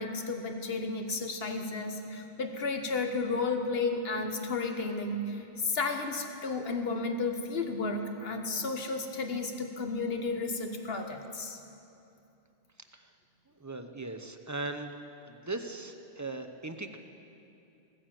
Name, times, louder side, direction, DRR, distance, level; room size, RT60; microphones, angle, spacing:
voice 1, 0.0-11.6, left 3 dB, 65° left, 5 dB, 1.4 m, -33 dB
voice 2, 13.6-14.9 15.2-17.0, right 2 dB, 20° right, 7 dB, 0.6 m, -39 dB
16.5 x 9.4 x 7.6 m, 2.7 s
omnidirectional pair, 1.1 m